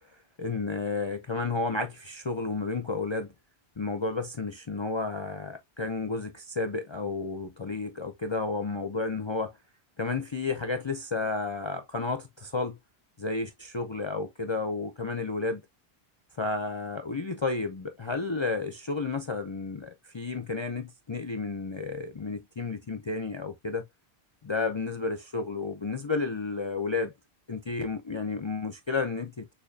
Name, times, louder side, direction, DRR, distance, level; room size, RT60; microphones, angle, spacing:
voice 1, 0.4-3.3 3.8-9.5 10.0-12.8 13.2-15.6 16.4-23.9 24.4-27.1 27.5-29.5, left 3 dB, 35° left, 0.4 m, -32 dB
6.7 x 2.8 x 2.6 m
omnidirectional pair, 1.1 m